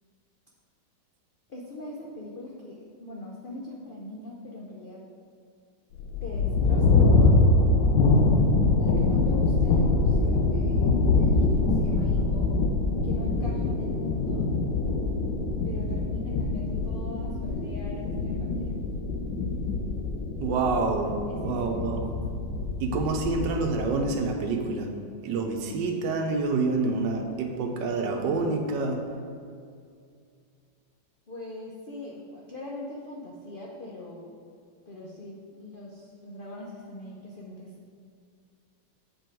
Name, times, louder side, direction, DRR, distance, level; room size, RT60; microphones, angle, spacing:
voice 1, 1.5-5.0 6.2-8.0 8.8-12.5 13.0-14.5 15.6-18.8 21.0-21.9 31.3-34.3 34.9-37.7, left 2 dB, 55° left, -3 dB, 0.6 m, -41 dB
sound 1, 5.9-24.0, left 3 dB, 80° left, 1.4 m, -24 dB
voice 2, 20.4-22.1 22.8-24.9 25.2-29.1, right 3 dB, 85° right, 4 dB, 1.4 m, -27 dB
7.4 x 5.4 x 4.5 m, 2.3 s
omnidirectional pair, 1.9 m